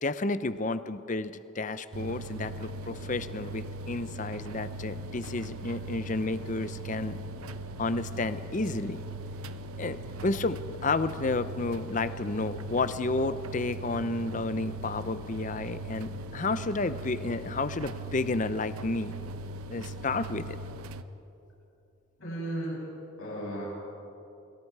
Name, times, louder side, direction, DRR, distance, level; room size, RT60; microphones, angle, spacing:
voice 1, 0.0-7.2 7.8-9.0 9.8-19.1 19.7-20.6, left 3 dB, 35° left, 13 dB, 0.6 m, -31 dB
sound 1, 1.9-21.0, right 1 dB, 90° right, 0.8 m, -39 dB
voice 2, 22.2-22.8 23.2-23.6, right 1 dB, 80° left, -5 dB, 7.5 m, -34 dB
29.0 x 23.0 x 4.8 m, 2.9 s
head